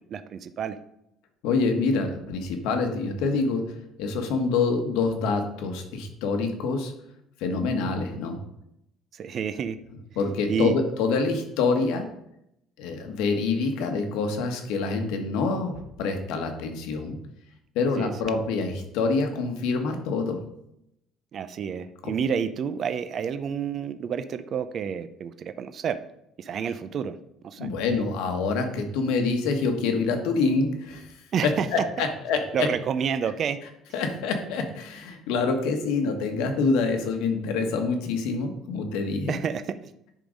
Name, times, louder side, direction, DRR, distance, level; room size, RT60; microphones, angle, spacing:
voice 1, 0.1-0.8 8.0-8.2 9.1-9.8 10.5-10.8 18.0-18.1 21.3-26.0 26.4-27.1 27.4-27.7 31.3-31.7 32.5-33.6 39.3-39.6, right 7 dB, 35° right, 10 dB, 0.4 m, -29 dB
voice 2, 1.4-6.9 7.4-8.4 10.2-12.1 12.8-17.2 17.7-20.4 27.6-31.1 31.4-32.7 33.9-39.4, left 4 dB, 90° left, 5 dB, 1.3 m, -26 dB
10.0 x 3.8 x 5.1 m, 0.80 s
cardioid pair, 170°, 0 cm